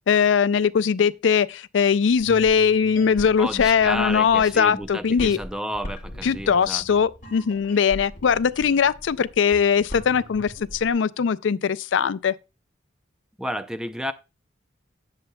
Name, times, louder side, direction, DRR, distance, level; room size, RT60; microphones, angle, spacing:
voice 1, 0.1-5.4 6.2-12.3, left 6 dB, 75° left, 0.4 m, -20 dB
sound 1, 2.1-10.9, equal, 40° left, 2.1 m, -40 dB
voice 2, 3.4-6.8 13.4-14.1, equal, 5° right, 0.4 m, -31 dB
18.5 x 6.9 x 2.2 m
head